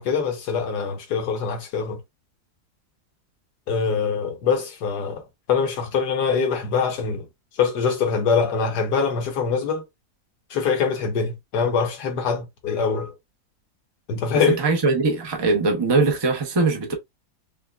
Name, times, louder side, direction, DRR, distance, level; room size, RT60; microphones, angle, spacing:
voice 1, 0.0-2.0 3.7-5.2 5.5-7.3 7.6-9.8 10.5-13.1 14.1-14.6, left 5 dB, 85° left, 1.6 m, -23 dB
voice 2, 14.6-16.9, right 3 dB, 40° right, 0.4 m, -21 dB
5.5 x 2.2 x 2.2 m
omnidirectional pair, 1.7 m